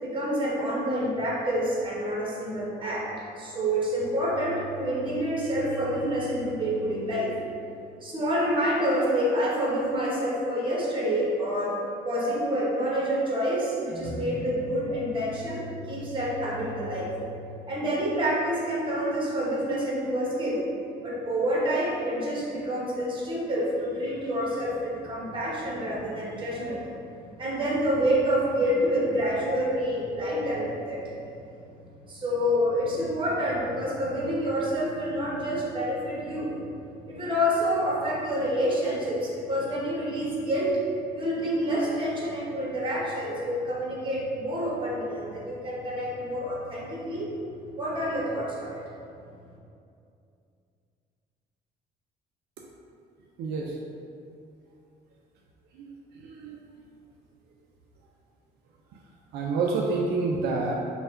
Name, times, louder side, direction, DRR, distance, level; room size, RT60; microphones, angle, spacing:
voice 1, 0.0-7.3 8.0-11.8 12.0-17.1 17.7-20.7 21.0-26.8 27.4-31.1 32.1-36.6 37.1-40.8 41.1-47.3 47.7-48.8, equal, 30° right, -5 dB, 1.1 m, -28 dB
voice 2, 53.4-53.7 55.8-55.9 56.4-56.6 59.3-60.7, right 3 dB, 75° right, -1 dB, 0.4 m, -27 dB
3.3 x 2.3 x 4.3 m, 2.5 s
cardioid pair, 110°, 17 cm